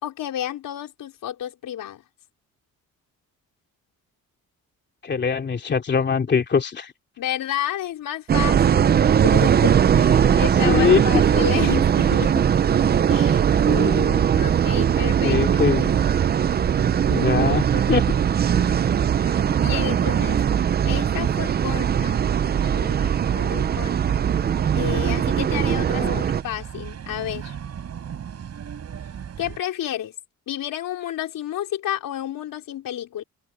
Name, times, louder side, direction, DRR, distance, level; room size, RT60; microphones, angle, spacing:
voice 1, 0.0-2.0 7.2-8.9 9.2-12.5 13.1-15.6 18.5-18.8 19.2-20.4 20.8-22.2 22.6-24.3 24.7-26.1 26.4-27.6 29.4-30.1 30.5-33.2, left 11 dB, 80° left, 4.4 m, -31 dB
voice 2, 5.0-6.9 10.6-11.2 15.2-15.9 17.1-18.2 25.9-26.3, left 6 dB, 30° left, 3.0 m, -22 dB
sound 1, 8.3-26.4, right 8 dB, 30° right, 0.4 m, -20 dB
sound 2, 11.4-29.6, right 8 dB, 50° right, 6.4 m, -37 dB
cardioid pair, 155°, 33 cm